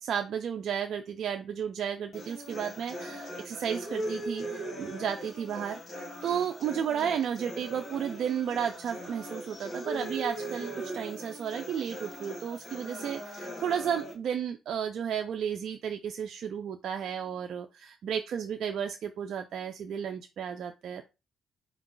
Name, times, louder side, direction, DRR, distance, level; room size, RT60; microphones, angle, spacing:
voice 1, 0.0-21.0, right 8 dB, 70° right, 5 dB, 0.4 m, -33 dB
sound 1, 2.1-14.1, right 1 dB, 40° left, 1.7 m, -40 dB
4.4 x 2.3 x 3.8 m, 0.27 s
cardioid pair, 90°, 0 cm